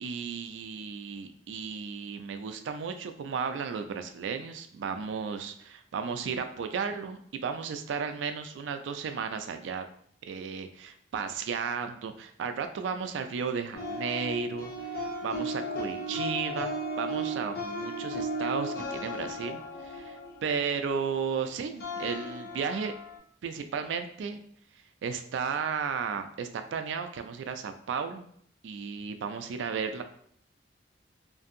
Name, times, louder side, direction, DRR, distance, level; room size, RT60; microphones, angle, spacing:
voice 1, 0.0-9.9 10.3-22.9 23.4-24.4 25.0-28.3 28.6-30.0, right 6 dB, 70° right, 8 dB, 0.3 m, -34 dB
sound 1, 13.7-23.2, equal, 60° left, 0.7 m, -35 dB
2.6 x 2.5 x 2.5 m, 0.64 s
head